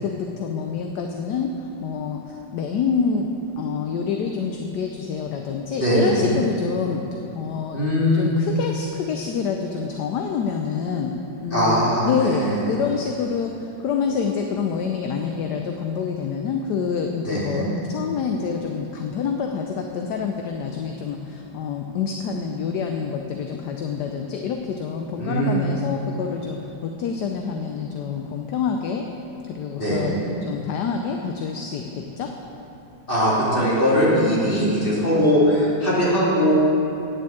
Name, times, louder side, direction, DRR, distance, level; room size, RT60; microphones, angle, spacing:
voice 1, 0.0-3.3 3.6-7.8 8.1-11.1 11.4-29.1 29.5-30.1 30.4-32.3, left 6 dB, 70° left, 3 dB, 1.1 m, -27 dB
voice 2, 5.8-6.3 7.7-8.3 11.5-12.6 17.2-17.6 25.2-25.6 29.8-30.1 33.1-36.5, equal, 25° left, -7 dB, 2.9 m, -20 dB
9.2 x 7.0 x 8.5 m, 2.8 s
omnidirectional pair, 2.1 m